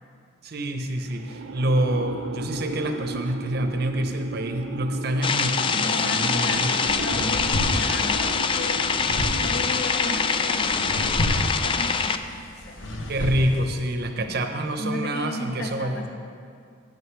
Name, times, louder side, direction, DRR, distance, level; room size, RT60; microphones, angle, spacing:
voice 1, 0.4-6.7 7.1-7.3 13.1-16.1, right 1 dB, 55° right, 6 dB, 0.8 m, -27 dB
sound 1, 1.1-12.2, right 4 dB, 85° right, 0.4 m, -37 dB
sound 2, 5.2-12.2, left 5 dB, 25° left, 0.3 m, -24 dB
voice 2, 5.8-8.9 9.4-12.8 14.1-14.4 14.8-16.1, left 2 dB, 60° left, 2 dB, 1.1 m, -34 dB
sound 3, 6.5-13.9, left 1 dB, 90° left, 1.0 m, -31 dB
10.5 x 6.5 x 6.1 m, 2.3 s
head